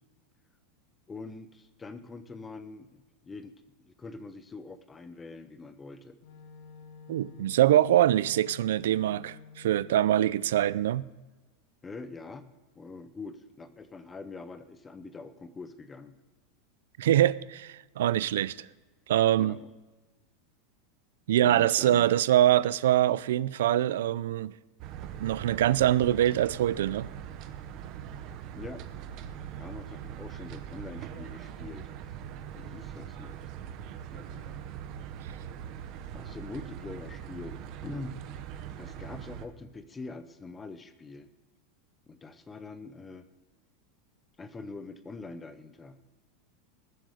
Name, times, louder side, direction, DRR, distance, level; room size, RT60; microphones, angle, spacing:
voice 1, 1.1-3.5 3.8-6.2 11.8-16.2 19.4-19.7 21.4-22.2 28.5-28.8 29.6-31.9 32.5-33.5 33.8-34.7 36.1-38.2 38.8-41.3 42.1-43.3 44.4-46.0, left 3 dB, 10° left, 0.6 m, -44 dB
Wind instrument woodwind instrument, 6.2-10.9, left 5 dB, 50° left, 1.9 m, -51 dB
voice 2, 7.1-11.1 17.0-18.7 19.1-19.6 21.3-24.5 25.2-27.1, right 12 dB, 85° right, 0.4 m, -24 dB
sound 1, 24.8-39.4, right 9 dB, 35° right, 0.8 m, -42 dB
20.5 x 7.8 x 4.9 m
supercardioid pair, 175°, 0 cm